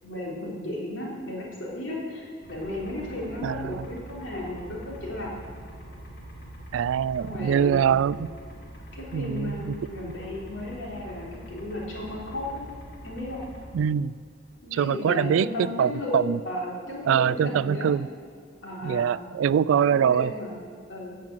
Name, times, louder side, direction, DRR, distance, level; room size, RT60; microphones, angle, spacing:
voice 1, 0.0-5.6 7.2-7.8 8.9-12.6 13.0-13.4 14.6-17.9 18.6-19.2 19.8-20.6 20.9-21.2, left 1 dB, 75° left, -4 dB, 3.6 m, -34 dB
sound 1, 2.4-13.7, right 1 dB, 55° left, 2.3 m, -44 dB
voice 2, 3.4-3.9 6.7-8.3 9.1-9.7 13.7-14.1 14.7-15.5 15.8-16.4 17.1-18.1 18.8-20.3, right 8 dB, 80° right, 20 dB, 0.3 m, -23 dB
15.0 x 7.4 x 7.6 m, 2.1 s
head